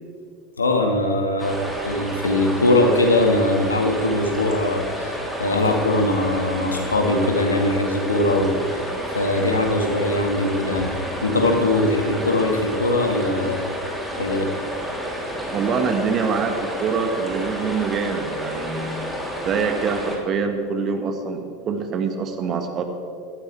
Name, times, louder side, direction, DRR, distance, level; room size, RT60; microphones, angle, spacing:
voice 1, 0.6-1.6 1.8-8.8 9.1-10.9 11.2-13.6 14.2-14.5, left 1 dB, 85° left, 3 dB, 1.9 m, -21 dB
rushing river in the woods, 1.4-20.2, equal, ahead, 3.4 m, -30 dB
voice 2, 15.5-19.2 19.4-22.8, right 5 dB, 35° right, 5 dB, 1.8 m, -25 dB
18.0 x 13.5 x 3.5 m, 2.4 s
figure-of-eight pair, 80°, 0 cm